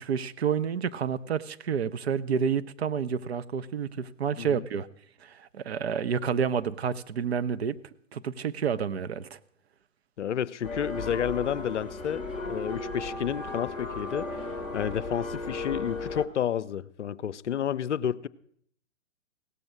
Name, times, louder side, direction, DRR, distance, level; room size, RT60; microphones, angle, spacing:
voice 1, 0.0-4.9 5.2-7.8 8.1-9.4, right 7 dB, 55° right, 12 dB, 0.6 m, -29 dB
voice 2, 10.2-18.3, left 9 dB, 65° left, 15 dB, 0.5 m, -31 dB
sound 1, 10.6-16.3, left 3 dB, 5° right, 0.5 m, -35 dB
16.5 x 6.9 x 6.1 m, 0.66 s
figure-of-eight pair, 125°, 39 cm